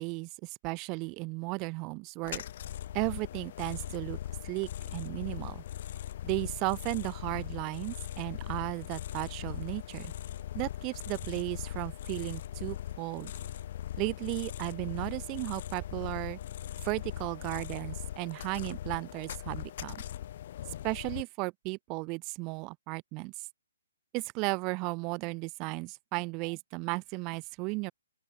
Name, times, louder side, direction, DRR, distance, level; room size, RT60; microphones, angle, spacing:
voice 1, 0.0-2.4 2.9-4.2 4.4-5.6 6.2-10.1 10.5-13.3 14.0-16.4 16.8-20.0 20.8-23.5 24.1-27.9, right 28 dB, 25° right, 4.1 m, -35 dB
sound 1, 2.2-21.2, left 11 dB, 45° left, 7.2 m, -40 dB
open air
hypercardioid pair, 155°, 0 cm